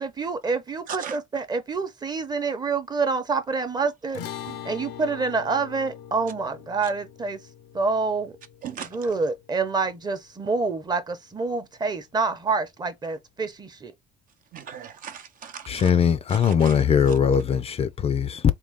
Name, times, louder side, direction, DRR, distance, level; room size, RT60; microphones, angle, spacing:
voice 1, 0.0-4.2 4.6-7.4 7.7-8.4 8.9-13.9, right 4 dB, 25° right, 0.8 m, -27 dB
sound 1, 4.1-10.7, left 9 dB, 85° left, 0.6 m, -42 dB
voice 2, 8.6-9.1 14.5-15.9 16.3-16.8 17.1-17.2, right 8 dB, 55° right, 0.7 m, -38 dB
voice 3, 15.7-18.4, left 7 dB, 35° left, 0.4 m, -21 dB
3.7 x 2.3 x 3.5 m
cardioid pair, 110°, 17 cm